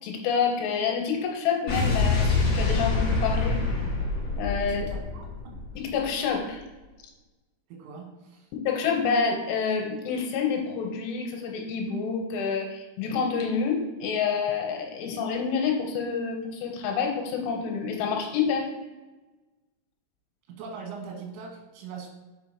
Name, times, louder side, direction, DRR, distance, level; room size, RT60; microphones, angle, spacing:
voice 1, 0.0-3.6 4.4-4.9 5.8-6.6 8.5-18.7, left 6 dB, 85° left, 1 dB, 3.1 m, -28 dB
Explosion, 1.7-6.0, left 3 dB, 60° left, 1.7 m, -26 dB
voice 2, 4.7-5.6 7.7-8.5 20.5-22.1, right 5 dB, 70° right, 0 dB, 2.9 m, -41 dB
6.4 x 5.2 x 2.8 m, 1.2 s
omnidirectional pair, 5.7 m